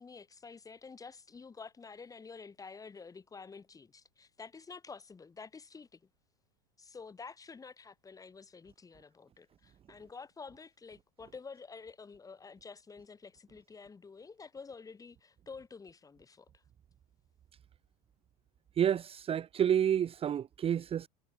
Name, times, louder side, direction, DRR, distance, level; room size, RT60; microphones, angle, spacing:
voice 1, 0.0-6.0 6.8-16.6, left 5 dB, 15° left, 4.7 m, -49 dB
voice 2, 18.8-21.1, right 9 dB, 25° right, 1.2 m, -29 dB
supercardioid pair, 120°, 21 cm